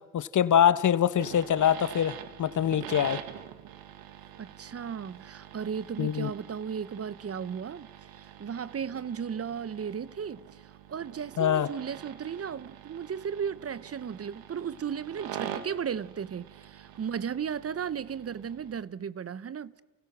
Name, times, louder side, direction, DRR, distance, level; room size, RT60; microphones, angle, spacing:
voice 1, 0.1-3.2 6.0-6.3 11.4-11.7, left 9 dB, 60° left, 1.2 m, -24 dB
sound 1, 1.2-18.8, right 10 dB, 85° right, 1.7 m, -45 dB
voice 2, 4.4-10.6 10.9-19.8, right 7 dB, 40° right, 0.9 m, -35 dB
29.5 x 28.5 x 6.0 m
supercardioid pair, 65°, 35 cm